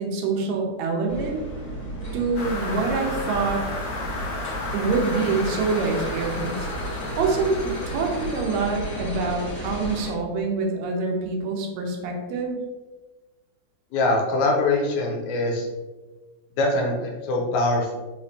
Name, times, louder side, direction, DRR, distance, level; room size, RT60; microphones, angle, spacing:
voice 1, 0.0-1.4 2.1-3.7 4.7-12.6, right 4 dB, 75° right, 1 dB, 1.9 m, -26 dB
sound 1, 1.1-10.1, right 1 dB, 45° left, 2.1 m, -33 dB
sound 2, 2.3-9.0, left 3 dB, 70° left, 1.2 m, -34 dB
voice 2, 13.9-15.7 16.6-17.9, left 2 dB, 85° left, 0 dB, 2.1 m, -23 dB
5.0 x 3.1 x 2.6 m, 1.2 s
omnidirectional pair, 3.4 m